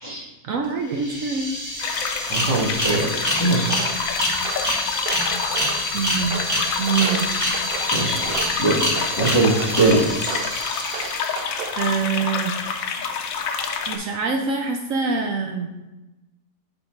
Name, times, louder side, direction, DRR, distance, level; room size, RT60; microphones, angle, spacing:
voice 1, 0.4-1.5 5.9-6.4 6.8-7.5 8.6-8.9 11.7-12.6 13.9-15.7, right 5 dB, 65° right, 2 dB, 0.9 m, -25 dB
sound 1, 0.6-0.7 0.9-11.7, left 1 dB, 10° right, 1.9 m, -27 dB
sound 2, 1.8-14.0, left 6 dB, 65° left, 1.0 m, -28 dB
voice 2, 2.2-3.7 7.9-8.3 8.6-8.8 9.2-10.0, right 2 dB, 15° left, -5 dB, 1.2 m, -21 dB
Walk footsteps, 3.7-4.0 4.4-5.9 6.3-8.6 9.0-9.8 10.2-10.6 10.9-11.8 12.2-12.6, right 6 dB, 90° right, 0.5 m, -34 dB
7.9 x 3.6 x 4.4 m, 1.0 s
omnidirectional pair, 1.6 m